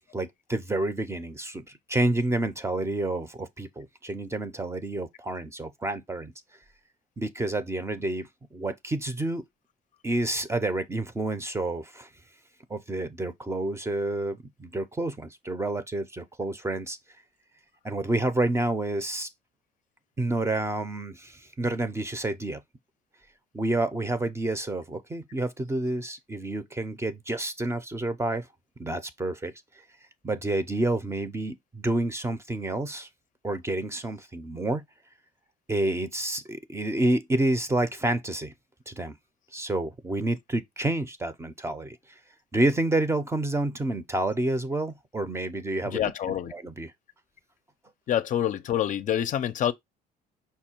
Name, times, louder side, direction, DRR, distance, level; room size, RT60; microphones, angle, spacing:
voice 1, 0.1-6.3 7.2-9.4 10.0-12.1 12.7-17.0 17.8-19.3 20.2-22.6 23.5-28.5 28.8-29.5 30.2-33.1 33.4-34.8 35.7-38.5 38.9-39.2 39.5-42.0 42.5-46.9, right 2 dB, 15° right, 0.6 m, -29 dB
voice 2, 45.9-46.5 48.1-49.7, left 10 dB, 50° left, 0.5 m, -26 dB
5.5 x 2.2 x 4.3 m
cardioid pair, 110°, 17 cm